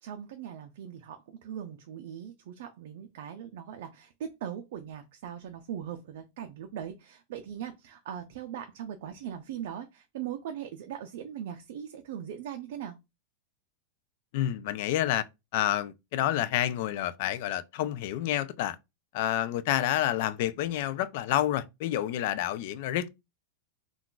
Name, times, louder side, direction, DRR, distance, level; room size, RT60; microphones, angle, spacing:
voice 1, 0.0-13.0, right 9 dB, 65° right, 0.4 m, -40 dB
voice 2, 14.3-15.2 15.5-18.8 19.1-23.1, left 12 dB, 55° left, 0.3 m, -29 dB
2.3 x 2.3 x 3.7 m
supercardioid pair, 150°, 0 cm